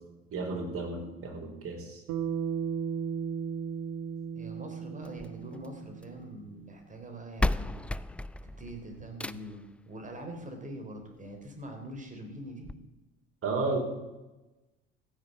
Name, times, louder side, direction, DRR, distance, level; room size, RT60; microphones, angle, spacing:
voice 1, 0.3-2.0 13.4-13.8, right 3 dB, 45° right, 1 dB, 4.6 m, -33 dB
Bass guitar, 2.1-6.5, right 7 dB, 60° right, 1.4 m, -35 dB
voice 2, 4.4-7.8 8.6-12.7, right 1 dB, 25° right, 4 dB, 3.9 m, -43 dB
sound 1, 5.0-6.2 7.0-7.1 7.4-9.7 11.0-11.1 11.6-11.7 12.0-12.1 12.6-12.7, left 2 dB, 5° left, 0.4 m, -33 dB
15.0 x 7.5 x 7.8 m, 1.1 s
hypercardioid pair, 60°, 32 cm